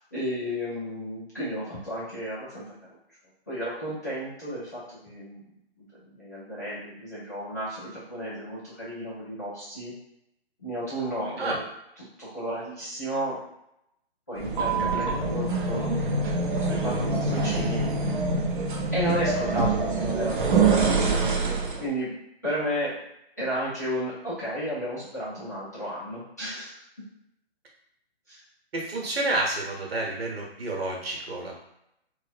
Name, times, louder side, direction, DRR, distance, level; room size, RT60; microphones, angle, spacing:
voice 1, 0.1-2.6 3.5-5.5 5.8-9.9 10.6-11.5 12.0-13.4 14.3-15.9 16.5-17.8 18.9-21.3 21.8-22.2 22.4-22.9 23.4-26.8 28.3-28.4, equal, 15° left, -11 dB, 0.4 m, -33 dB
sound 1, 14.4-21.9, right 3 dB, 50° right, 0.4 m, -25 dB
voice 2, 28.7-31.6, right 2 dB, 65° right, -1 dB, 0.9 m, -30 dB
2.5 x 2.0 x 2.4 m, 0.80 s
figure-of-eight pair, 145°, 32 cm